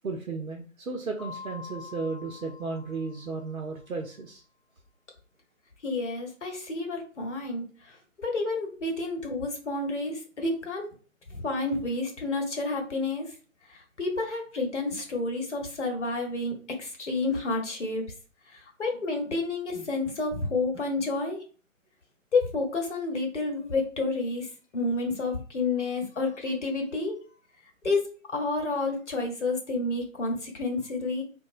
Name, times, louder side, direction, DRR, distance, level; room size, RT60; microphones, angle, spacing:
voice 1, 0.0-4.4, right 4 dB, 85° right, 1 dB, 0.6 m, -34 dB
Mallet percussion, 1.2-3.8, left 6 dB, ahead, 1.2 m, -46 dB
voice 2, 5.8-10.9 11.3-13.3 13.7-18.0 18.5-21.4 22.3-27.2 27.8-31.2, left 3 dB, 60° left, 2 dB, 0.8 m, -30 dB
2.8 x 2.1 x 2.4 m, 0.37 s
figure-of-eight pair, 145°, 41 cm